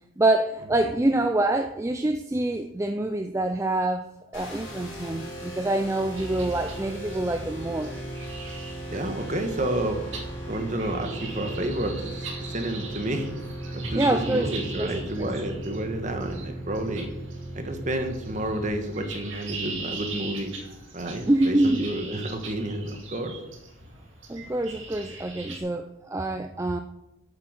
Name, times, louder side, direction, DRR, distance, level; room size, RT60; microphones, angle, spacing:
voice 1, 0.2-4.1 4.3-7.9 13.8-14.5 14.8-15.3 21.3-21.9 24.3-26.8, right 2 dB, 15° right, 7 dB, 0.3 m, -26 dB
sound 1, 4.3-18.7, right 1 dB, 65° left, 4.0 m, -38 dB
sound 2, 6.2-25.6, right 3 dB, 70° right, 2.2 m, -40 dB
voice 2, 8.9-10.0 10.5-12.1 12.4-13.3 13.7-17.1 17.5-20.5 20.9-23.3, right 1 dB, 35° right, 5 dB, 1.3 m, -30 dB
8.7 x 7.8 x 6.3 m, 0.92 s
head